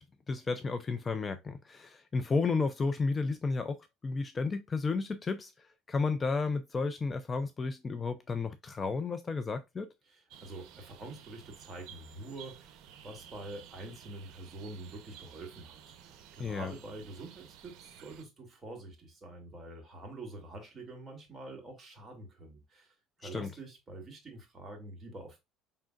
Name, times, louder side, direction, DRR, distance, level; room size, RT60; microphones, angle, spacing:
voice 1, 0.0-3.8 4.0-9.9 16.4-16.7 23.2-23.5, left 4 dB, 25° left, 0.5 m, -32 dB
voice 2, 10.1-15.9 16.3-22.9 23.2-25.4, right 2 dB, 25° right, 2.3 m, -46 dB
sound 1, 10.3-18.3, right 9 dB, 70° right, 0.7 m, -54 dB
5.4 x 3.7 x 2.4 m
cardioid pair, 115°, 0 cm